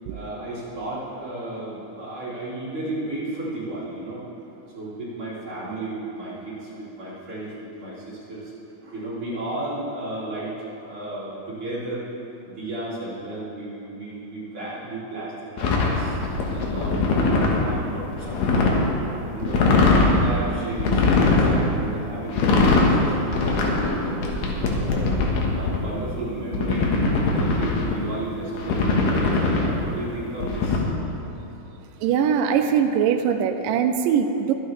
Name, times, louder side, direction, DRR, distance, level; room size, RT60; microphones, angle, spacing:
voice 1, 0.1-4.2 4.7-8.5 8.8-10.5 10.8-12.1 12.4-16.2 16.5-18.8 19.2-25.1 25.5-26.9 27.3-30.8, right 2 dB, 40° right, -10 dB, 3.9 m, -33 dB
sound 1, 15.6-17.7 18.1-18.8 19.4-20.2 20.8-21.6 22.3-22.9 23.3-25.8 26.5-27.9 28.5-29.8 30.4-30.8, left 3 dB, 85° left, 3.0 m, -21 dB
voice 2, 32.0-34.5, right 7 dB, 85° right, 6 dB, 2.3 m, -21 dB
22.0 x 8.9 x 3.3 m, 3.0 s
omnidirectional pair, 3.8 m